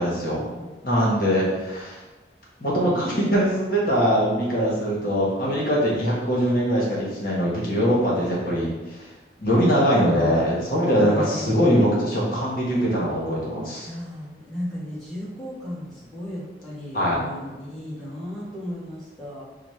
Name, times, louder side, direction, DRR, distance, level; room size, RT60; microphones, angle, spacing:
voice 1, 0.0-0.5 0.8-2.0 2.6-9.1 9.4-13.9 16.9-17.2, equal, 55° left, -5 dB, 1.0 m, -22 dB
voice 2, 0.5-1.2 10.1-10.4 11.0-11.9 13.8-19.4, left 1 dB, ahead, -10 dB, 1.2 m, -35 dB
6.0 x 2.1 x 3.1 m, 1.1 s
head